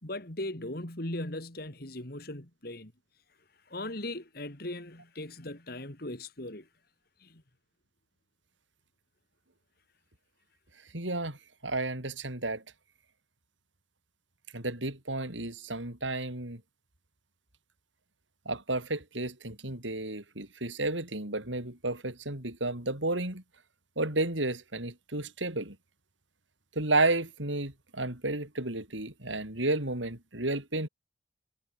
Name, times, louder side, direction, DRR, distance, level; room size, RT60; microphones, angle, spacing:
voice 1, 0.0-2.9 3.7-6.7 7.2-7.4, left 1 dB, 55° left, 3.1 m, -38 dB
voice 2, 10.9-11.4 11.6-12.6 14.5-16.6 18.5-23.4 24.0-25.8 26.7-30.9, right 2 dB, 80° right, 5.4 m, -32 dB
head